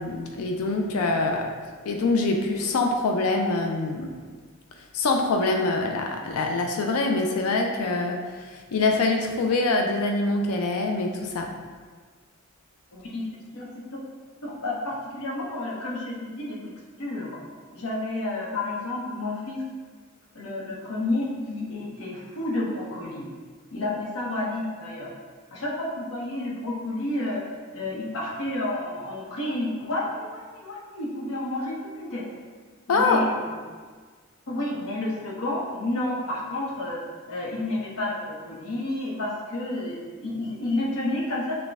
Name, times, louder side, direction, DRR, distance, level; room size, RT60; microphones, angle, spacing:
voice 1, 0.0-1.5 1.8-4.1 4.9-11.5 32.9-33.2, left 3 dB, 85° left, 3 dB, 0.4 m, -24 dB
voice 2, 12.9-14.0 14.4-16.6 17.0-17.4 17.7-19.6 20.3-23.3 23.7-25.1 25.5-27.4 27.7-32.2 32.9-33.3 34.5-37.0 37.3-41.5, left 2 dB, 70° left, -3 dB, 0.8 m, -30 dB
6.1 x 2.2 x 3.4 m, 1.5 s
head